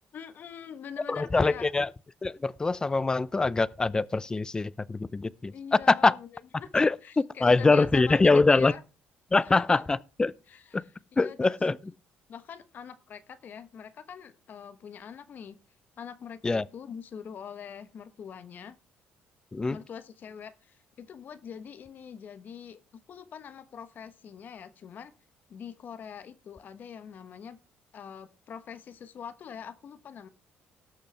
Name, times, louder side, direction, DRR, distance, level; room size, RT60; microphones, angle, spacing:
voice 1, 0.1-1.7 5.5-8.2 8.5-8.8 9.4-9.8 10.5-10.8 11.1-11.5 12.3-15.6 16.0-18.8 19.7-22.8 23.1-25.1 25.5-27.6 27.9-30.3, left 7 dB, 55° left, 1.1 m, -44 dB
voice 2, 1.1-1.9 2.2-5.5 5.9-6.1 6.7-7.0 7.4-8.7 9.3-10.3 10.7-10.8 11.2-11.8 16.4-16.6 19.5-19.8, left 3 dB, 20° left, 0.5 m, -23 dB
18.0 x 6.6 x 3.4 m
cardioid pair, 90°, 4 cm